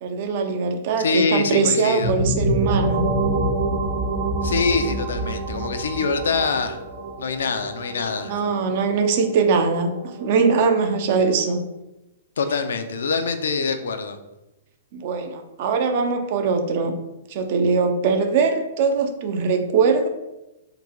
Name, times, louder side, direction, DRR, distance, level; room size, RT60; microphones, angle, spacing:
voice 1, 0.0-3.1 8.2-11.7 14.9-16.9 17.3-20.1, right 5 dB, 40° right, 6 dB, 0.5 m, -21 dB
voice 2, 1.0-2.1 4.4-6.8 7.2-8.4 12.4-14.2, left 4 dB, 90° left, 8 dB, 0.5 m, -24 dB
sound 1, 2.0-11.6, right 2 dB, 55° right, 1.1 m, -27 dB
3.8 x 2.2 x 4.5 m, 0.96 s
hypercardioid pair, 170°, 0 cm